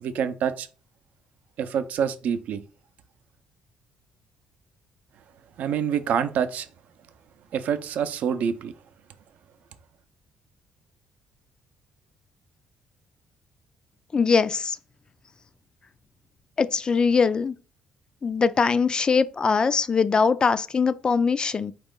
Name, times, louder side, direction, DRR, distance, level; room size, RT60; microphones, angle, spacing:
voice 1, 0.0-0.7 1.6-2.6 5.6-6.7 7.5-8.7, right 8 dB, 70° right, 0.5 m, -26 dB
voice 2, 14.1-14.8 16.6-17.5 18.2-21.7, left 5 dB, 30° left, 0.3 m, -22 dB
4.4 x 3.0 x 3.6 m
cardioid pair, 100°, 3 cm